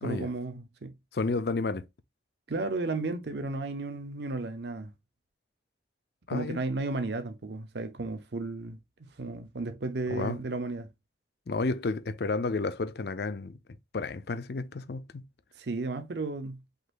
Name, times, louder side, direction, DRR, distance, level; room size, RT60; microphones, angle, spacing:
voice 1, 0.0-0.9 2.5-4.9 6.3-8.8 9.2-10.9 15.6-16.6, right 3 dB, 65° right, 0.7 m, -33 dB
voice 2, 1.1-1.9 6.3-6.6 10.1-10.4 11.5-13.6 13.9-15.2, left 3 dB, 55° left, 0.5 m, -31 dB
5.2 x 4.0 x 2.4 m
head